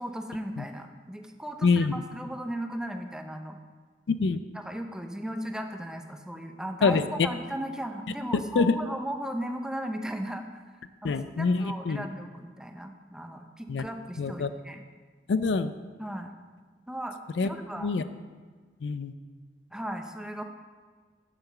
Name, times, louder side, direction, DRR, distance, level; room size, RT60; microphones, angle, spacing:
voice 1, 0.0-3.6 4.5-10.6 11.0-14.8 16.0-16.3 16.9-17.2 17.4-17.9 19.7-20.4, equal, 5° right, 5 dB, 0.6 m, -36 dB
voice 2, 1.6-1.9 4.1-4.4 6.8-7.0 8.6-8.7 11.0-12.1 13.7-13.8 14.2-14.5 15.3-15.7 17.4-17.5 17.8-18.0 18.8-19.1, left 4 dB, 80° left, 12 dB, 0.4 m, -25 dB
7.2 x 5.9 x 6.8 m, 1.5 s
head